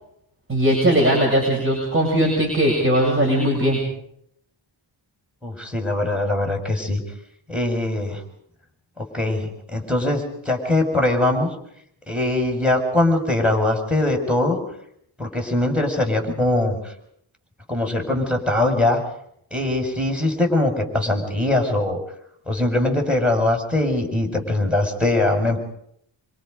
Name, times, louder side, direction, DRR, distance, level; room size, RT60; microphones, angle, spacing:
voice 1, 0.5-3.8, equal, 25° right, -1 dB, 7.9 m, -19 dB
voice 2, 5.4-7.0 7.5-8.2 9.1-11.5 12.1-14.6 15.2-16.9 17.7-19.0 19.5-22.0 22.5-25.6, left 2 dB, ahead, 3 dB, 6.0 m, -21 dB
26.0 x 26.0 x 5.2 m, 0.72 s
wide cardioid pair, 85°, 47 cm